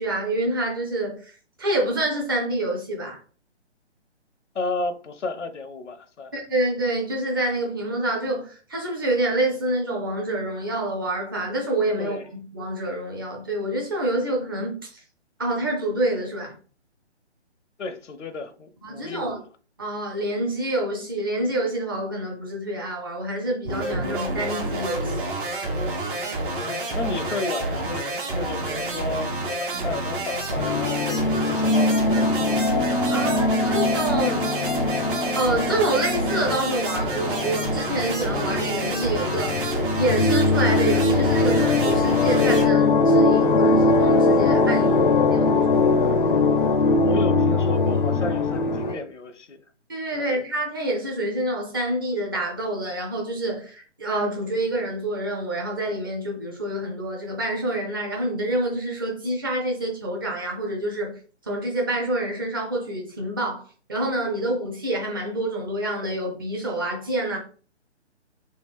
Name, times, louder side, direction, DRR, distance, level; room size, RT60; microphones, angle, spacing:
voice 1, 0.0-1.3 1.6-3.2 6.3-15.0 15.4-16.5 18.8-19.4 19.8-25.3 33.1-34.5 35.3-46.1 48.9-49.0 49.9-61.2 61.5-67.4, right 1 dB, 20° right, 0.5 m, -27 dB
voice 2, 4.5-6.3 12.0-12.3 17.8-19.4 26.5-32.7 33.1-33.2 44.8-45.8 47.0-49.6 50.1-50.4, left 3 dB, 85° left, 0.7 m, -33 dB
sound 1, 23.6-42.7, right 2 dB, 45° right, 1.1 m, -29 dB
sound 2, 26.9-27.1 27.7-28.0 28.6-30.6 31.2-31.4 32.0-34.0 34.6-34.9 35.5-35.7 36.3-36.6 37.0-39.8, right 2 dB, 85° right, 0.8 m, -39 dB
sound 3, 30.6-48.9, left 3 dB, 45° left, 0.4 m, -21 dB
3.4 x 2.4 x 3.4 m
figure-of-eight pair, 145°, 35 cm